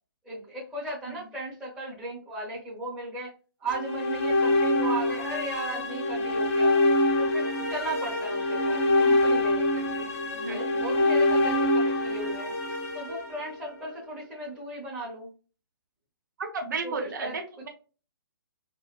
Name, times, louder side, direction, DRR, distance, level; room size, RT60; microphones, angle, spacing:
voice 1, 0.2-3.3 3.6-6.8 7.2-10.1 10.5-12.5 12.9-15.3 16.8-17.7, right 2 dB, 5° right, -9 dB, 0.8 m, -37 dB
sound 1, 3.7-13.9, left 1 dB, 35° left, 0.5 m, -25 dB
voice 2, 16.4-17.7, right 4 dB, 55° right, 4 dB, 0.7 m, -33 dB
2.6 x 2.2 x 2.3 m, 0.35 s
figure-of-eight pair, 130°, 12 cm